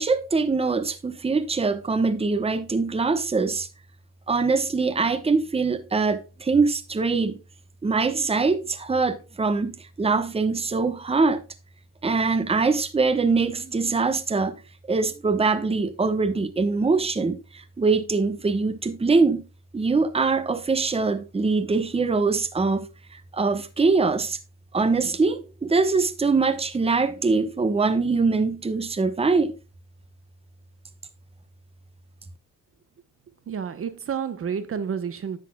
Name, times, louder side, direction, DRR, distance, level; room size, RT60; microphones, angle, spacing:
voice 1, 0.0-3.7 4.3-7.4 7.8-11.4 12.0-14.6 14.9-19.5 19.7-24.4 24.7-29.5, right 4 dB, 20° right, 1.0 m, -23 dB
voice 2, 33.5-35.4, right 7 dB, 45° right, 1.0 m, -30 dB
10.0 x 8.3 x 2.3 m
cardioid pair, 90°, 30 cm